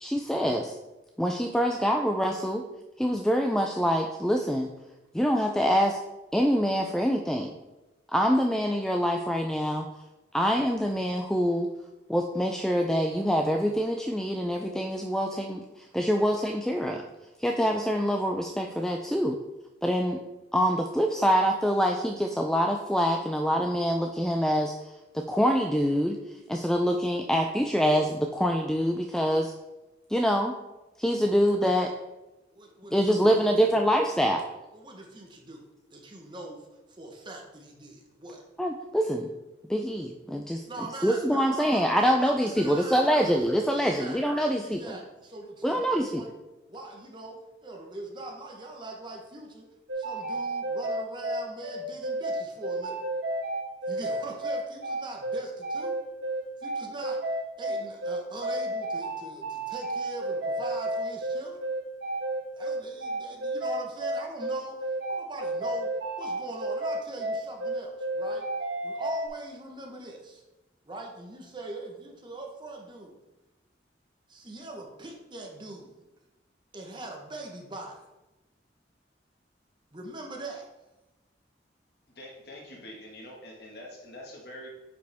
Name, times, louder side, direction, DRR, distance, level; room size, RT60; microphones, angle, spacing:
voice 1, 0.0-0.7 1.2-2.6 3.0-4.7 5.1-6.0 6.3-7.5 8.1-9.9 10.3-11.7 12.1-17.0 17.4-19.4 19.8-20.2 20.5-29.5 30.1-30.5 31.0-31.9 32.9-34.4 38.6-39.3 39.7-40.6 41.0-45.0 45.6-46.2, equal, 5° left, 2 dB, 0.3 m, -25 dB
voice 2, 32.5-33.2 33.4-33.5 34.7-38.4 40.7-43.4 43.7-44.2 44.6-46.3 46.7-49.7 50.0-53.0 53.9-56.0 56.6-61.6 62.6-65.9 66.2-68.5 68.8-70.4 70.8-73.2 74.3-76.1 76.7-78.0 79.9-80.7, right 2 dB, 25° right, 1 dB, 1.1 m, -42 dB
sound 1, 49.9-69.3, right 1 dB, 75° right, 1.2 m, -31 dB
voice 3, 82.1-84.7, left 1 dB, 60° left, -1 dB, 1.7 m, -45 dB
9.1 x 5.0 x 3.5 m, 1.0 s
head